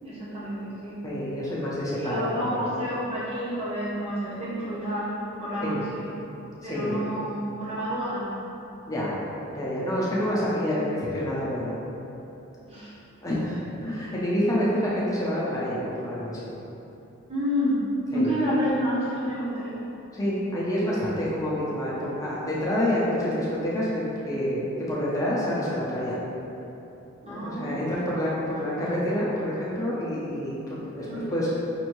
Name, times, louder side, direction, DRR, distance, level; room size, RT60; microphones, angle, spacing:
voice 1, 0.0-1.0 2.0-5.2 5.4-6.1 6.6-8.4 12.7-12.9 17.3-19.9 27.2-27.8 31.0-31.3, equal, 30° right, -9 dB, 1.0 m, -29 dB
voice 2, 1.0-2.6 5.6-5.9 6.6-7.0 8.9-9.2 9.5-11.7 13.2-16.5 18.1-18.3 20.1-26.2 27.3-31.5, equal, 15° left, -8 dB, 0.7 m, -28 dB
5.3 x 2.7 x 3.0 m, 3.0 s
head